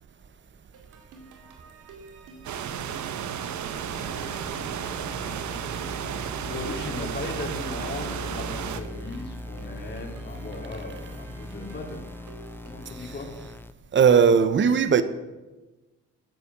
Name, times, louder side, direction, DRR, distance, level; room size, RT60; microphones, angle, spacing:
sound 1, 0.7-13.0, right 3 dB, 90° right, 2.6 m, -49 dB
sound 2, 2.4-8.8, right 8 dB, 70° right, 1.2 m, -33 dB
sound 3, 3.7-13.7, left 1 dB, 5° left, 0.6 m, -40 dB
voice 1, 6.4-12.0 12.6-13.3, left 2 dB, 35° left, 1 dB, 3.9 m, -37 dB
voice 2, 13.9-15.0, right 6 dB, 40° right, 12 dB, 1.0 m, -18 dB
13.5 x 9.8 x 7.3 m, 1.1 s
cardioid pair, 90°, 30 cm